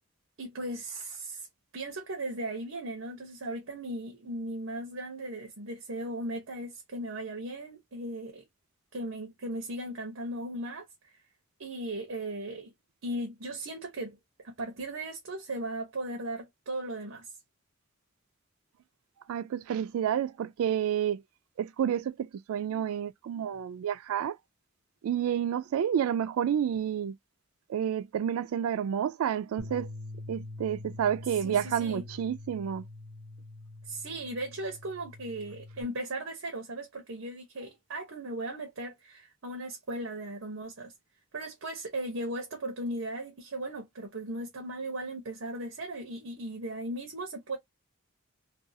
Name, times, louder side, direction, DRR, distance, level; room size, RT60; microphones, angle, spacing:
voice 1, 0.4-1.5 1.7-8.4 8.9-11.1 11.6-12.7 13.0-14.2 14.4-17.3 31.4-32.0 33.8-40.9 41.3-47.6, right 1 dB, 65° right, 0.8 m, -37 dB
voice 2, 19.3-21.2 21.6-24.4 25.0-27.2 27.7-29.9 30.3-32.8, right 9 dB, 80° right, 0.3 m, -30 dB
Bass guitar, 29.6-35.8, left 2 dB, 70° left, 0.6 m, -44 dB
2.6 x 2.3 x 2.6 m
head